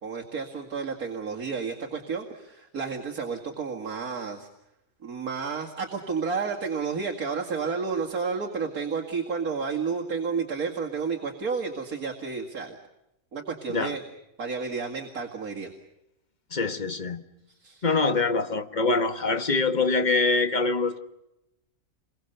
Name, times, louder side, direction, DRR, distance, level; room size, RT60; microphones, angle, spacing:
voice 1, 0.0-4.5 5.0-12.8 13.3-14.0 14.4-15.7 17.6-17.8, right 5 dB, 75° right, 2.6 m, -31 dB
voice 2, 16.5-17.2 17.8-21.0, left 3 dB, 30° left, 1.5 m, -24 dB
29.0 x 23.0 x 6.8 m
omnidirectional pair, 1.5 m